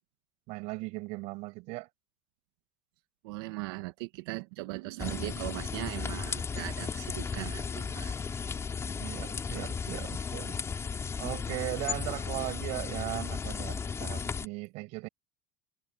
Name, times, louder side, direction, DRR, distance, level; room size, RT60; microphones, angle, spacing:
voice 1, 0.5-1.9 9.0-10.6 11.2-15.1, right 24 dB, 65° right, 7.3 m, -38 dB
voice 2, 3.2-8.2, right 21 dB, 85° right, 1.6 m, -39 dB
sound 1, 5.0-14.5, left 6 dB, 20° left, 4.4 m, -35 dB
supercardioid pair, 135°, 12 cm